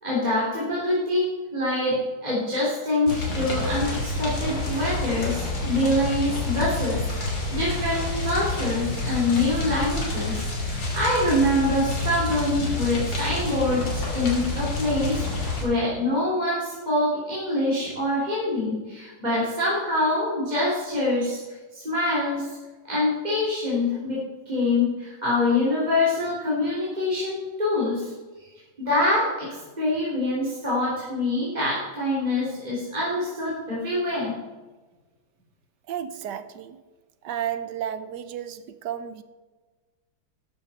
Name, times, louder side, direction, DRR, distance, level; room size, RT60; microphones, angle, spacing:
voice 1, 0.0-21.4 21.7-22.5 22.9-24.2 24.4-28.1 28.8-34.3, left 1 dB, 20° right, -8 dB, 3.5 m, -25 dB
sound 1, 3.1-15.6, left 2 dB, 70° left, 3.7 m, -28 dB
voice 2, 35.9-36.8 37.2-39.2, right 10 dB, 70° right, 12 dB, 1.2 m, -32 dB
13.0 x 9.5 x 4.2 m, 1.3 s
omnidirectional pair, 2.1 m